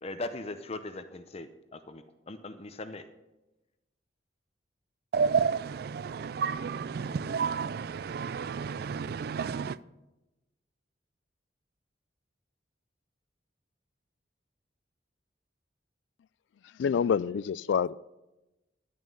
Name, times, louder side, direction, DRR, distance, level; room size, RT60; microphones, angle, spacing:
voice 1, 0.0-3.0, left 2 dB, 35° left, 0.6 m, -40 dB
voice 2, 5.1-9.8, right 6 dB, 55° right, 0.3 m, -31 dB
voice 3, 16.8-18.0, left 7 dB, 75° left, 0.3 m, -27 dB
11.0 x 9.4 x 5.4 m
head